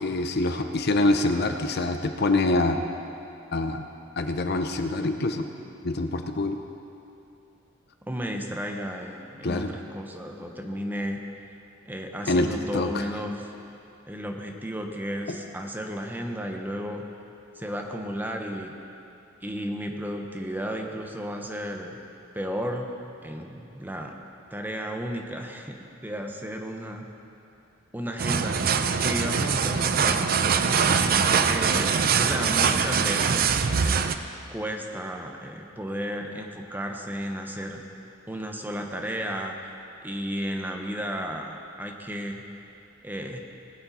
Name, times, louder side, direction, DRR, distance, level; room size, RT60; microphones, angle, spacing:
voice 1, 0.0-2.8 3.5-3.8 4.2-5.5 5.8-6.6 9.4-9.7 12.3-12.5 12.7-13.0, left 2 dB, 55° left, 7 dB, 0.7 m, -25 dB
voice 2, 8.0-11.2 11.8-13.5 14.1-17.0 17.5-18.7 19.4-22.0 22.3-22.9 23.2-24.1 24.5-25.8 26.0-27.1 27.9-28.6 29.0-30.3 31.5-34.1 34.5-37.8 38.3-39.6 40.0-42.4 43.0-43.4, equal, 10° right, 2 dB, 0.9 m, -33 dB
sound 1, 28.2-34.2, right 6 dB, 45° right, 0.5 m, -23 dB
19.5 x 8.7 x 4.2 m, 2.7 s
head